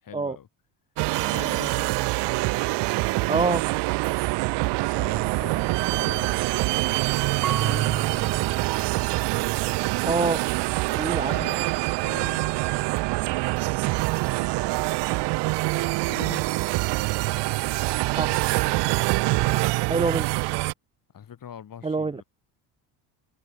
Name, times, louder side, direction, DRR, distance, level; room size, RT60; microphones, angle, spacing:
voice 1, 0.0-0.5 1.2-2.0 4.8-6.4 7.4-8.5 11.2-12.6 14.3-14.6 16.0-16.4 21.1-22.2, left 9 dB, 45° left, 6.3 m, -42 dB
sound 1, 1.0-20.7, right 23 dB, 65° right, 0.5 m, -25 dB
voice 2, 3.3-3.6 10.0-10.4 11.0-11.3 18.2-18.4 19.9-20.3 21.8-22.1, right 3 dB, 15° right, 0.7 m, -25 dB
Marimba xylophone / Wood, 7.4-10.3, right 9 dB, 40° right, 2.5 m, -32 dB
cardioid pair, 105°, 46 cm